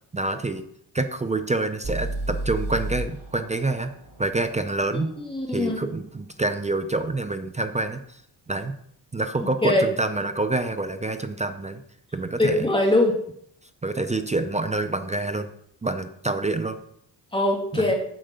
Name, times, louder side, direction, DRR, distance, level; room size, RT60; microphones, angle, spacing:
voice 1, 0.1-0.6 0.9-3.9 4.2-5.1 5.5-8.2 8.5-8.7 9.1-11.8 12.1-12.7 13.8-15.5 15.8-16.8 17.7-17.9, right 2 dB, 15° right, 8 dB, 0.4 m, -27 dB
sound 1, 1.8-5.8, right 2 dB, 50° right, 3.9 m, -33 dB
voice 2, 4.9-5.9 9.6-9.8 12.4-13.2 17.3-18.0, left 1 dB, 10° left, 0 dB, 2.0 m, -22 dB
7.6 x 4.9 x 6.7 m, 0.70 s
cardioid pair, 130°, 46 cm